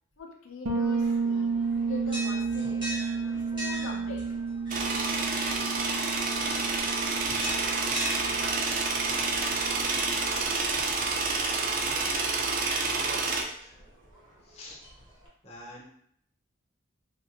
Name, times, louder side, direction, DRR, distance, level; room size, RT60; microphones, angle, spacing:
voice 1, 0.2-1.5 1.9-2.9 3.3-4.2, left 3 dB, 75° left, 0 dB, 0.5 m, -43 dB
Bass guitar, 0.6-10.3, right 4 dB, 85° right, 0.6 m, -32 dB
sound 1, 0.8-15.3, equal, 25° right, 1.0 m, -43 dB
sound 2, 4.7-13.4, right 3 dB, 40° right, 0.4 m, -28 dB
voice 2, 11.9-12.2 12.9-13.7 14.4-14.8 15.4-15.9, equal, 30° left, -4 dB, 0.7 m, -46 dB
3.2 x 2.4 x 2.8 m, 0.67 s
head